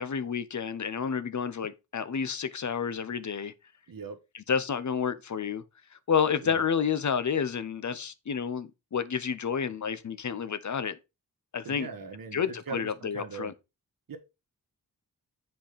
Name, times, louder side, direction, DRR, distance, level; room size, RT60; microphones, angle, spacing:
voice 1, 0.0-3.5 4.3-5.6 6.1-11.0 11.5-11.9 12.3-13.5, left 6 dB, 55° left, 0.8 m, -30 dB
voice 2, 11.6-13.5 14.1-14.2, right 5 dB, 70° right, 1.6 m, -40 dB
7.8 x 4.5 x 5.2 m
wide cardioid pair, 90°, 35 cm